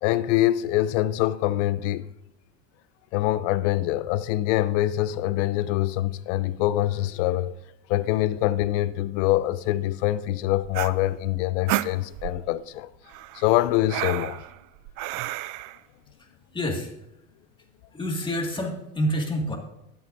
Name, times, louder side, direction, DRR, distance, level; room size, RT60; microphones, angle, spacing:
voice 1, 0.0-2.1 3.1-7.6 7.9-12.9 13.3-14.4, left 15 dB, 80° left, 0.6 m, -24 dB
sound 1, 10.6-12.5 13.1-15.8, right 16 dB, 60° right, 0.5 m, -31 dB
voice 2, 16.2-16.9 17.9-19.6, equal, 15° left, 2.0 m, -28 dB
21.0 x 8.0 x 2.6 m
supercardioid pair, 125°, 35 cm